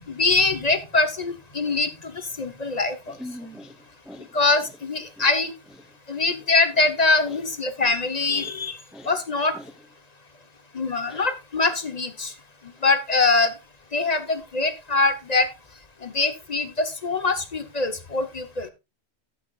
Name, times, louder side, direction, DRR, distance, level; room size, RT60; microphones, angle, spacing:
voice 1, 0.1-2.1 2.4-3.0 4.3-5.5 6.1-8.8 9.1-9.5 10.7-12.3 12.8-13.5 13.9-15.5 16.0-18.7, left 3 dB, 40° left, 1.0 m, -23 dB
voice 2, 3.1-3.8 4.1-4.3 5.2-5.3 6.2-6.3 7.3-7.4 7.8-7.9 8.3-8.5 8.9-9.1 9.5-9.7 11.1-11.3, left 1 dB, ahead, 0.6 m, -41 dB
13.0 x 8.0 x 2.4 m
omnidirectional pair, 1.1 m